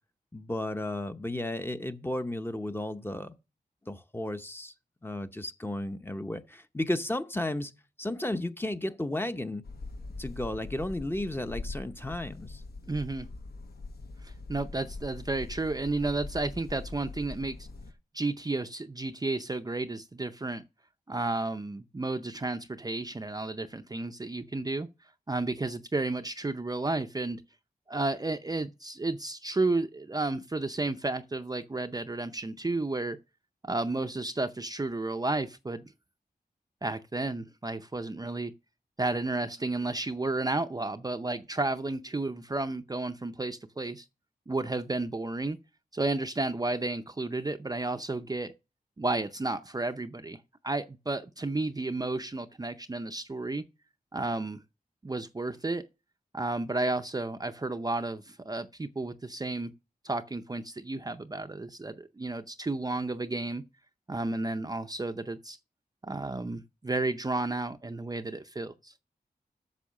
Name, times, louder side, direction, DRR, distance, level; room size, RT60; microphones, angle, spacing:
voice 1, 0.3-3.4 3.9-4.7 5.0-7.7 8.0-9.6 10.2-12.6, left 1 dB, 15° left, 0.8 m, -33 dB
sound 1, 9.6-17.9, left 3 dB, 80° left, 1.1 m, -42 dB
voice 2, 12.9-13.3 14.2-17.7 18.1-20.6 21.1-24.9 25.3-27.4 27.9-33.2 33.6-35.8 36.8-38.5 39.0-44.0 44.5-45.6 45.9-48.5 49.0-53.6 54.1-54.6 55.0-55.8 56.3-59.7 60.0-63.6 64.1-65.6 66.0-68.9, right 2 dB, 25° right, 0.5 m, -32 dB
8.5 x 6.2 x 6.3 m
wide cardioid pair, 95°, 16 cm